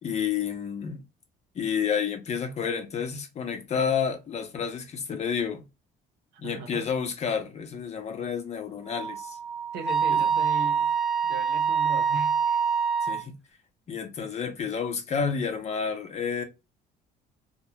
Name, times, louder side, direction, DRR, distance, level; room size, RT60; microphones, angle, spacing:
voice 1, 0.0-1.0 1.5-5.7 6.4-9.4 10.1-10.4 13.0-13.4 13.9-16.4, left 6 dB, 40° left, 0.7 m, -30 dB
voice 2, 6.3-6.9 9.7-10.9 11.2-12.6, right 4 dB, 80° right, 0.7 m, -38 dB
Wind instrument woodwind instrument, 8.9-13.2, right 6 dB, ahead, 0.3 m, -25 dB
2.3 x 2.2 x 2.8 m
cardioid pair, 110°, 17 cm